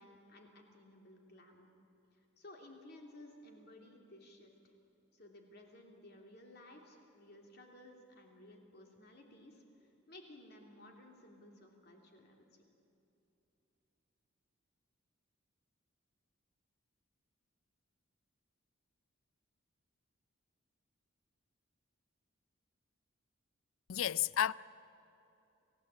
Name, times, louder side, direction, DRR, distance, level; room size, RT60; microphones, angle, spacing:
voice 1, 0.0-1.7 2.1-4.7 5.1-12.6, left 1 dB, 50° left, 3.3 m, -57 dB
voice 2, 23.9-24.5, left 10 dB, 80° left, 0.4 m, -31 dB
28.5 x 16.0 x 8.6 m
head